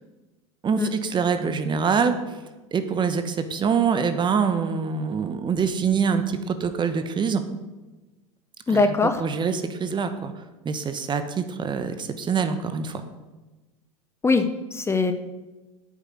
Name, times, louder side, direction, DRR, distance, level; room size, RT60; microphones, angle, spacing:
voice 1, 0.6-2.4 2.7-7.4 8.7-8.9 9.2-10.3 10.6-13.0, right 6 dB, 30° right, 9 dB, 1.3 m, -25 dB
voice 2, 8.7-9.2 14.2-15.1, left 3 dB, 15° left, 8 dB, 0.9 m, -21 dB
8.9 x 8.1 x 7.7 m, 1.1 s
hypercardioid pair, 80°, 17 cm